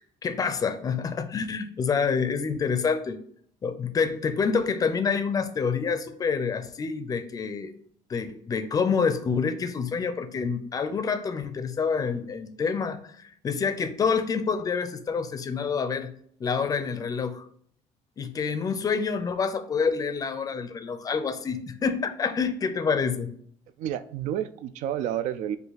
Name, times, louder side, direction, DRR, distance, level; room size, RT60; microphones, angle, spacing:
voice 1, 0.2-3.2 3.6-7.7 8.1-16.1 16.4-17.5 18.2-23.3, left 5 dB, 30° left, 0.4 m, -27 dB
voice 2, 23.8-25.6, right 10 dB, 80° right, 0.4 m, -30 dB
5.3 x 2.5 x 3.9 m
cardioid pair, 140°, 13 cm